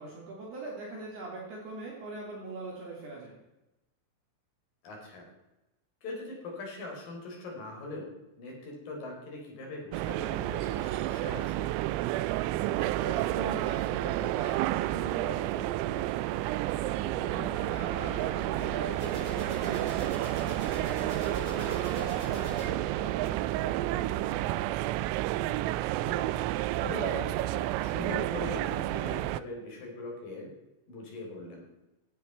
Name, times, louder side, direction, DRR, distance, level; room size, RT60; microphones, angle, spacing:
voice 1, 0.0-3.4 12.6-20.4 20.8-24.9, right 3 dB, 55° right, -3 dB, 4.7 m, -42 dB
voice 2, 4.8-5.3 6.0-8.1 8.4-11.7 17.2-17.5 26.0-26.4 26.8-30.5 30.9-31.6, left 2 dB, 45° left, -1 dB, 5.5 m, -41 dB
sound 1, 9.9-29.4, right 16 dB, 85° right, 3.2 m, -30 dB
sound 2, 17.2-22.7, equal, 15° right, 6.7 m, -42 dB
17.0 x 12.5 x 4.5 m, 0.95 s
omnidirectional pair, 6.0 m